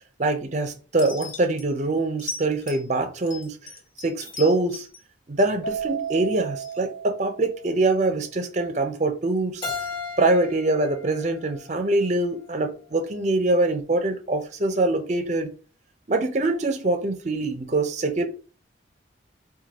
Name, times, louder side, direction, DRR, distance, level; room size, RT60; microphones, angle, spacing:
voice 1, 0.2-3.6 4.0-4.9 5.3-9.6 10.2-15.5 16.1-18.3, right 2 dB, 35° right, 0.5 m, -24 dB
sound 1, 1.0-1.6 2.2-2.9 3.3-5.0 5.4-6.1 6.6-6.8, left 5 dB, 80° left, 1.2 m, -38 dB
Keyboard (musical), 5.6-8.1, right 7 dB, 50° left, 0.7 m, -34 dB
Keyboard (musical) 2, 9.6-12.4, left 4 dB, 25° left, 1.2 m, -36 dB
4.5 x 2.3 x 2.8 m
head